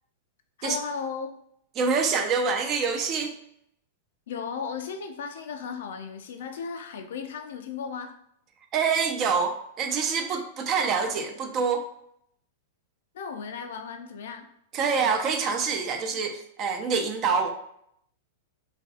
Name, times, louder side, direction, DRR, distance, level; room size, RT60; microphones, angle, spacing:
voice 1, 0.6-1.3 4.3-8.1 13.1-14.5, left 6 dB, 75° left, 6 dB, 0.4 m, -35 dB
voice 2, 1.8-3.3 8.7-11.8 14.7-17.5, right 5 dB, 35° right, 5 dB, 0.4 m, -26 dB
2.4 x 2.3 x 2.4 m, 0.72 s
hypercardioid pair, 130°, 0 cm